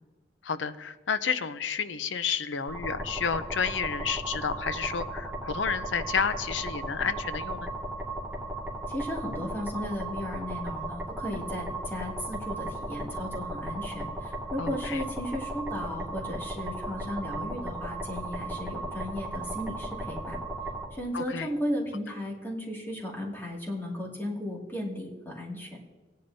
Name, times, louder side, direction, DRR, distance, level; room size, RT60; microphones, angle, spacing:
voice 1, 0.4-7.7 14.6-15.0 21.1-21.5, left 6 dB, 80° left, 13 dB, 0.6 m, -31 dB
sound 1, 2.7-20.8, right 1 dB, 10° right, 1.9 m, -36 dB
voice 2, 8.9-20.4 20.9-25.8, left 1 dB, 10° left, -3 dB, 2.2 m, -35 dB
18.5 x 10.0 x 2.7 m, 1.3 s
head